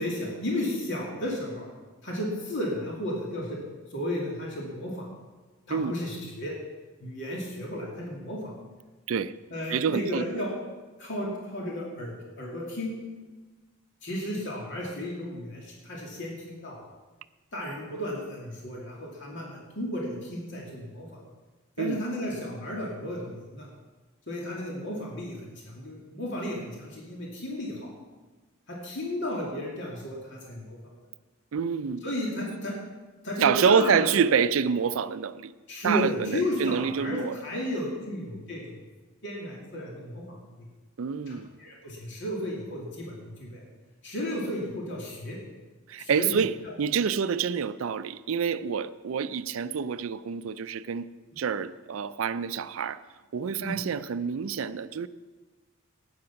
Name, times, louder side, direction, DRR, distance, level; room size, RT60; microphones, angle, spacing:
voice 1, 0.0-1.7 2.0-3.6 3.9-5.1 5.7-6.5 7.0-8.5 9.5-10.5 11.0-12.9 14.0-16.8 17.5-21.2 21.8-23.7 24.3-27.9 28.7-30.8 32.0-32.7 33.2-34.1 35.7-38.6 39.2-40.7 41.3-43.6 44.0-45.4 46.0-46.4 46.6-46.7 53.6-53.7, left 1 dB, 60° left, 2.6 m, -33 dB
voice 2, 9.7-10.4 21.8-22.0 31.5-32.0 33.4-35.5 35.8-37.4 41.0-41.5 45.9-51.1 51.4-53.0 53.3-55.1, right 6 dB, 75° right, 0.4 m, -27 dB
13.0 x 9.5 x 5.8 m
head